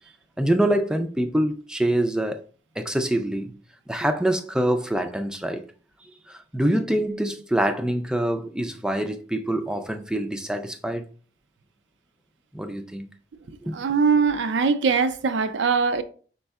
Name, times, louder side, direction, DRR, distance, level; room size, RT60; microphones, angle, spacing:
voice 1, 0.4-2.4 2.8-3.6 3.9-5.6 6.0-11.1 12.5-13.1 13.6-13.8, right 1 dB, 5° right, 0.3 m, -25 dB
voice 2, 13.7-16.0, right 5 dB, 80° right, 0.4 m, -21 dB
5.3 x 4.2 x 2.3 m
head